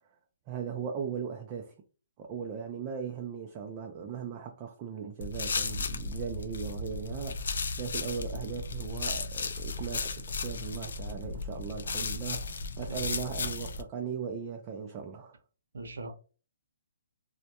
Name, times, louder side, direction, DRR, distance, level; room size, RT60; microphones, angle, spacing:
voice 1, 0.5-1.7 2.2-15.4, right 7 dB, 25° right, 0.3 m, -38 dB
sound 1, 5.2-13.8, left 4 dB, 75° left, 0.3 m, -35 dB
voice 2, 12.8-13.5 15.7-16.1, right 2 dB, 80° right, 0.5 m, -42 dB
2.1 x 2.1 x 2.7 m
hypercardioid pair, 150°, 0 cm